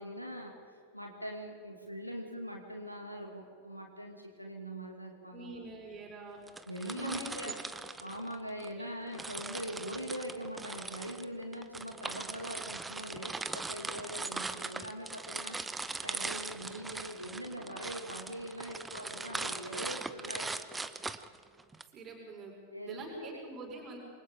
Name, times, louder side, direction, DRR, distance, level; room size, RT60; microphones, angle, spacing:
voice 1, 0.0-5.6 6.7-7.6 8.0-15.6 16.0-20.6 22.7-23.4, equal, 90° left, 2 dB, 2.4 m, -42 dB
voice 2, 5.3-6.4 6.8-7.5 8.8-8.9 21.9-22.5 22.8-24.0, right 3 dB, 30° right, -2 dB, 5.6 m, -45 dB
sound 1, 6.5-8.7 9.1-21.8, right 3 dB, 10° right, 0.8 m, -40 dB
28.0 x 24.0 x 3.8 m, 2.3 s
figure-of-eight pair, 90°, 0 cm